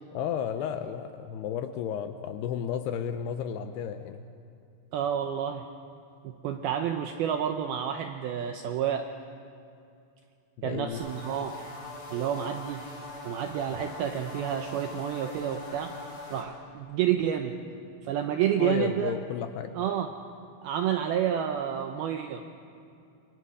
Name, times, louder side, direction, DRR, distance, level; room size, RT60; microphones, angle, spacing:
voice 1, 0.1-4.2 10.6-11.0 18.6-19.8, left 8 dB, 80° left, 8 dB, 2.5 m, -33 dB
voice 2, 4.9-5.7 6.2-9.1 10.6-11.6 12.1-12.9 13.2-16.0 16.3-17.6 18.0-19.1 19.8-20.2 20.6-22.4, right 9 dB, 85° right, 5 dB, 2.2 m, -29 dB
sound 1, 10.9-16.4, left 2 dB, 55° left, 6.3 m, -42 dB
27.5 x 23.5 x 4.9 m, 2.5 s
omnidirectional pair, 5.3 m